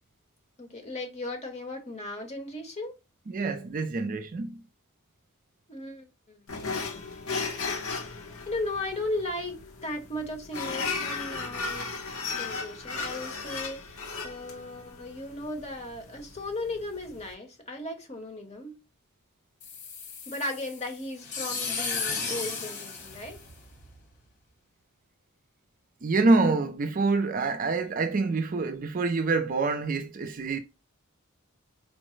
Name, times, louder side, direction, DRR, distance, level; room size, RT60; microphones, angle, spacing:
voice 1, 0.6-3.0 5.7-6.4 8.5-11.9 12.3-18.8 20.3-23.4, left 2 dB, 30° left, 1.1 m, -36 dB
voice 2, 3.3-4.6 26.0-30.6, right 3 dB, 40° right, 0.4 m, -26 dB
sound 1, 6.5-17.3, left 4 dB, 75° left, 1.0 m, -36 dB
sound 2, 19.6-24.0, left 5 dB, 50° left, 1.8 m, -35 dB
4.5 x 2.1 x 3.1 m
head